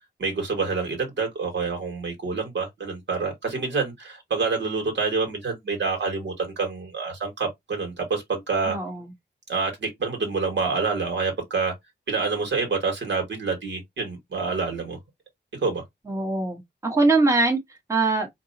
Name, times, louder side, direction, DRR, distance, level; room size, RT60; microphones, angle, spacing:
voice 1, 0.2-8.8 9.5-11.7 12.1-15.0 15.6-15.8, right 4 dB, 70° right, 1.9 m, -27 dB
voice 2, 8.7-9.1 16.1-18.3, right 3 dB, 15° right, 1.2 m, -23 dB
4.6 x 2.9 x 2.7 m
wide cardioid pair, 150°, 19 cm